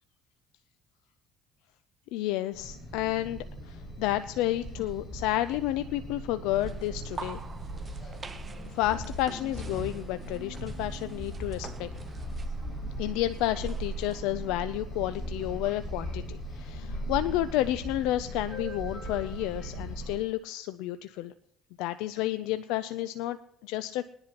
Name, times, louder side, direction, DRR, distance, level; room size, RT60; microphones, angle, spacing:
voice 1, 2.1-7.4 8.7-11.9 13.0-21.3 21.8-23.4 23.6-24.0, left 14 dB, 85° left, 12 dB, 0.4 m, -31 dB
sound 1, 2.5-20.2, right 1 dB, 25° left, 5.8 m, -38 dB
sound 2, 6.5-14.2, right 4 dB, 25° right, 0.7 m, -47 dB
20.5 x 10.5 x 2.9 m, 0.72 s
cardioid pair, 105°, 0 cm